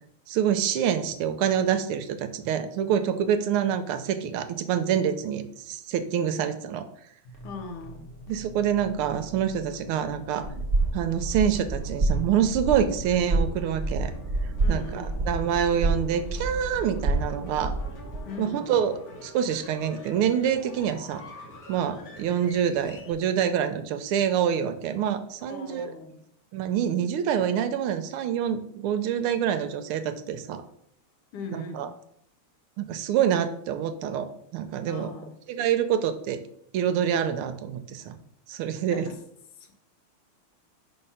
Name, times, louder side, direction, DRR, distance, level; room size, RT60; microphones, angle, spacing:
voice 1, 0.3-6.9 8.3-10.6 10.9-14.1 14.7-17.7 18.4-18.9 19.2-21.2 21.7-25.9 26.5-30.6 31.5-31.9 32.8-35.1 35.5-36.4 36.7-38.2 38.5-39.1, right 9 dB, 80° right, 10 dB, 1.5 m, -26 dB
sound 1, 7.2-23.1, equal, 50° left, 1.4 m, -45 dB
voice 2, 7.4-8.1 14.6-15.2 18.3-18.7 25.5-26.2 31.3-31.9 34.9-35.4 38.9-39.2 39.6-39.7, left 3 dB, 80° left, 6 dB, 1.8 m, -39 dB
sound 2, 10.4-18.2, right 2 dB, 25° right, 1.1 m, -28 dB
5.6 x 3.9 x 5.5 m, 0.72 s
omnidirectional pair, 2.4 m